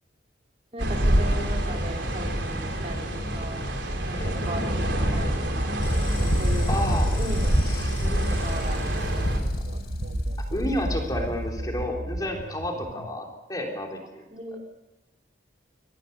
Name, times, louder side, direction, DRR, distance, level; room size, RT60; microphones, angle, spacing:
voice 1, 0.7-3.6 4.0-5.8 6.2-7.7 8.0-9.8 12.9-13.0 14.3-14.6, right 1 dB, 35° right, 1 dB, 3.7 m, -38 dB
sound 1, 0.8-9.4, right 1 dB, 70° right, 3.6 m, -27 dB
sound 2, 5.5-13.1, right 1 dB, 55° right, 1.2 m, -33 dB
sound 3, 5.8-11.7, equal, 60° left, 3.7 m, -28 dB
voice 2, 6.7-7.1 7.7-8.1 10.4-14.2 14.5-14.6, left 1 dB, 20° left, 1 dB, 3.4 m, -31 dB
25.0 x 18.5 x 6.7 m, 0.99 s
head